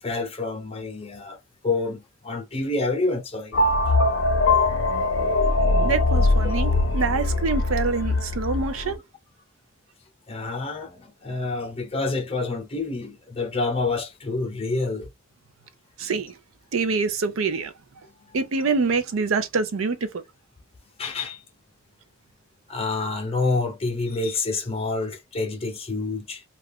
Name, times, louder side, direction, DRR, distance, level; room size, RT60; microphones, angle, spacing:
voice 1, 0.0-3.6 4.6-4.7 8.8-8.9 10.3-15.1 18.0-18.4 21.0-21.4 22.7-26.4, left 3 dB, 30° left, 0.6 m, -28 dB
sound 1, 3.5-8.9, left 2 dB, 70° left, 0.6 m, -21 dB
voice 2, 5.8-9.0 16.0-16.3 16.7-17.7 18.3-20.2, right 4 dB, 85° right, 0.5 m, -25 dB
2.3 x 2.3 x 3.5 m
head